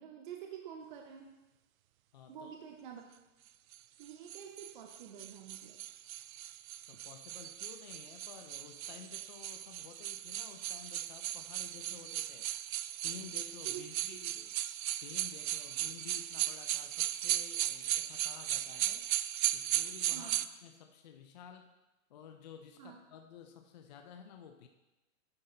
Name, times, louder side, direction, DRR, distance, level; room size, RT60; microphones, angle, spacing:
voice 1, 0.0-1.3 2.3-3.0 4.0-5.8 13.6-14.2 20.1-20.4 22.8-23.0, right 9 dB, 35° right, 3 dB, 0.7 m, -48 dB
voice 2, 2.1-2.5 6.9-12.5 13.0-14.5 15.0-19.1 19.5-21.8 22.1-24.7, left 8 dB, 35° left, 5 dB, 0.5 m, -53 dB
sound 1, 3.7-20.5, right 13 dB, 80° right, 0.5 m, -37 dB
9.7 x 6.4 x 3.9 m, 1.0 s
hypercardioid pair, 155°, 41 cm